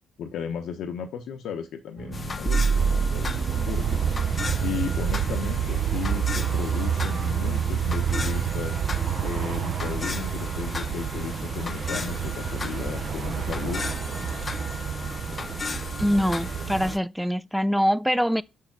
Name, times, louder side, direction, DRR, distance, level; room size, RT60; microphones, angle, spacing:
voice 1, 0.2-4.0 4.6-8.8 9.2-13.9, left 7 dB, 75° left, 0.8 m, -35 dB
sound 1, 2.0-8.2, right 5 dB, 35° right, 1.2 m, -30 dB
sound 2, 2.1-17.0, left 4 dB, 35° left, 0.7 m, -35 dB
sound 3, 2.7-17.0, right 9 dB, 55° right, 0.5 m, -29 dB
voice 2, 16.0-18.4, equal, ahead, 0.4 m, -24 dB
6.4 x 4.6 x 6.0 m
cardioid pair, 90°, 0 cm